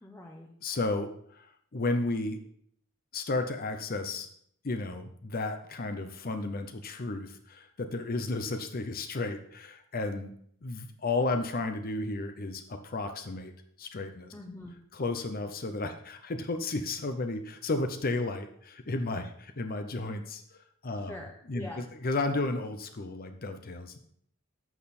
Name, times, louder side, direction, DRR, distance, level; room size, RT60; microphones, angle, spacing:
voice 1, 0.0-0.5 14.3-14.8 20.9-21.8, left 1 dB, 10° left, 1 dB, 0.9 m, -44 dB
voice 2, 0.6-2.4 3.1-4.3 4.6-10.3 10.6-13.5 13.8-14.3 14.9-20.4 20.8-21.2 21.5-24.0, left 2 dB, 45° left, 7 dB, 0.7 m, -33 dB
11.0 x 6.7 x 4.2 m, 0.66 s
head